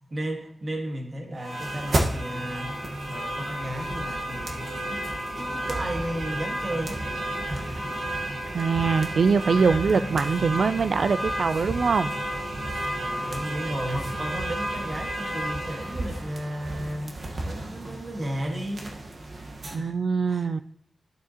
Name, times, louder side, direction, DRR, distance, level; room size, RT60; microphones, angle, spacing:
voice 1, 0.1-5.0 5.4-7.0 7.5-7.7 9.9-10.1 13.0-17.2 17.4-18.9 19.7-20.0 20.3-20.6, right 1 dB, 40° right, 2 dB, 1.7 m, -34 dB
sound 1, 1.4-19.7, right 1 dB, 60° right, 1.4 m, -32 dB
voice 2, 8.5-12.1 19.7-20.6, right 5 dB, 75° right, 13 dB, 0.4 m, -23 dB
12.0 x 7.1 x 2.9 m, 0.69 s
wide cardioid pair, 105°, 0 cm